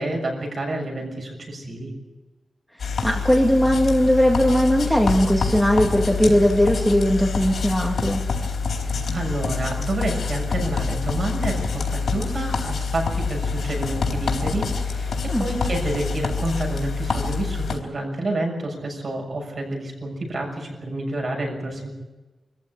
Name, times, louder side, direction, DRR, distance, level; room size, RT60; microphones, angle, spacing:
voice 1, 0.0-1.9 8.7-21.9, right 2 dB, 45° right, 1 dB, 6.8 m, -29 dB
sound 1, 2.8-17.8, left 4 dB, 75° left, 4.0 m, -26 dB
voice 2, 3.0-8.2 15.3-15.4, equal, ahead, -1 dB, 2.0 m, -19 dB
25.0 x 15.0 x 9.9 m, 1.2 s
wide cardioid pair, 175°, 0 cm